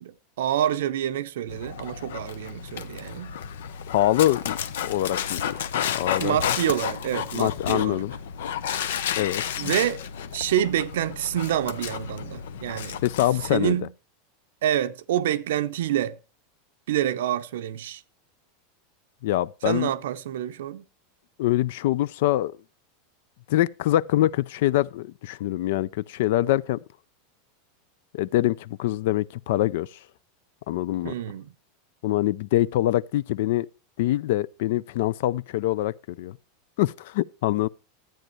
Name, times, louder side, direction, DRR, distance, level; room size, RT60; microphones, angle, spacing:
voice 1, 0.0-3.3 6.2-8.0 9.6-10.0 10.3-13.0 13.5-13.9 14.6-16.2 16.9-18.0 19.6-20.8 31.0-31.5, right 11 dB, 85° right, 0.7 m, -27 dB
Dog, 1.5-13.6, left 9 dB, 90° left, 0.8 m, -32 dB
voice 2, 3.9-4.6 4.8-5.4 5.7-6.4 7.3-8.1 9.2-9.4 13.0-13.8 19.2-19.9 21.4-22.5 23.5-26.8 28.1-29.9 30.7-31.1 32.0-33.7 34.0-36.4 36.8-37.7, left 14 dB, 65° left, 0.4 m, -24 dB
12.0 x 9.1 x 3.1 m
supercardioid pair, 165°, 0 cm